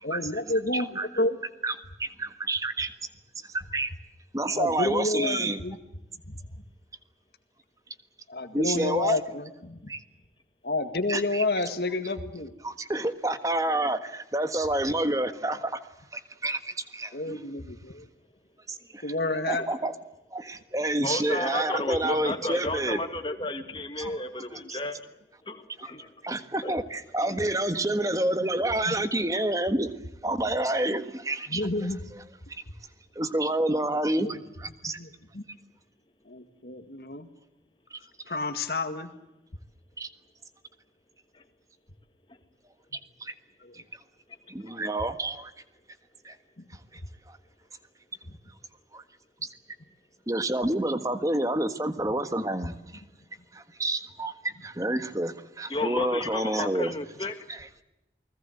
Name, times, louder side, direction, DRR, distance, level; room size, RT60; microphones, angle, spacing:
voice 1, 0.0-1.4 4.5-5.8 6.3-6.4 8.3-9.9 10.6-12.5 17.1-18.1 19.0-19.7 24.6-24.7 28.4-28.5 28.9-29.0 31.5-32.0 34.2-34.3 34.9-35.4 36.3-37.3 38.3-39.1, left 2 dB, 65° left, 8 dB, 1.9 m, -30 dB
voice 2, 0.7-1.1 1.6-1.7 2.0-2.9 3.5-3.9 4.3-5.6 8.5-9.2 9.9-10.0 11.1-11.4 12.6-15.8 16.1-17.4 18.7-19.0 19.5-19.9 20.3-23.0 24.0-24.8 26.2-29.9 30.2-31.6 33.1-35.0 37.9-38.0 40.0-40.1 43.2-43.3 44.5-45.5 46.2-46.4 46.9-47.0 47.3-47.4 48.9-49.0 49.4-49.5 50.3-53.0 53.5-56.9 57.5-57.8, right 1 dB, 20° right, 10 dB, 1.5 m, -29 dB
voice 3, 21.0-25.0 25.5-25.6 25.8-26.1 26.6-26.7 55.7-57.3, left 2 dB, 30° left, 6 dB, 1.9 m, -32 dB
29.0 x 20.5 x 8.0 m, 0.92 s
head